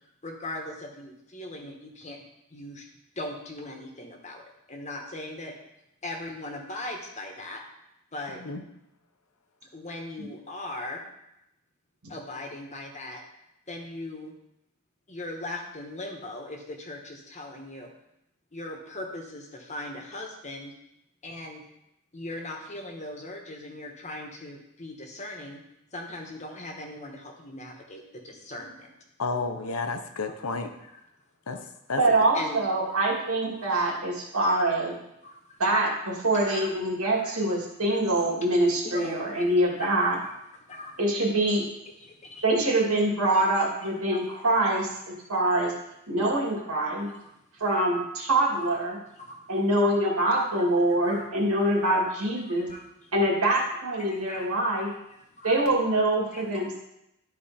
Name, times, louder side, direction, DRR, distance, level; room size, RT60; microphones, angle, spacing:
voice 1, 0.2-2.2 2.5-2.9 3.2-4.4 4.7-5.5 6.0-7.6 8.1-8.4 9.7-11.0 12.1-13.2 13.7-14.3 15.1-17.9 18.5-20.7 21.2-21.6 22.1-25.6 25.9-28.9 30.8-30.9 32.3-32.6 33.6-34.0 34.6-34.7 35.2-35.6 36.5-36.7 37.2-37.3 37.9-38.0 38.5-39.4 40.0-40.2 40.7-41.0 42.0-42.5 43.3-43.4 43.8-44.2 47.1-47.2 48.5-48.7 49.2-49.4 50.6-50.7 51.0-51.2 52.4-53.1 54.3-54.5 55.4-55.6 56.3-56.4, left 1 dB, 30° left, 2 dB, 1.2 m, -39 dB
voice 2, 8.3-8.6 29.2-30.7 31.5-31.6 31.9-32.0, left 3 dB, 75° left, 7 dB, 0.8 m, -31 dB
voice 3, 32.0-34.9 35.6-40.2 41.0-41.6 42.4-45.7 46.1-47.1 47.6-49.0 49.5-52.7 53.1-54.9 55.4-56.8, right 1 dB, 85° right, -3 dB, 2.6 m, -24 dB
12.0 x 4.4 x 4.3 m, 0.84 s
head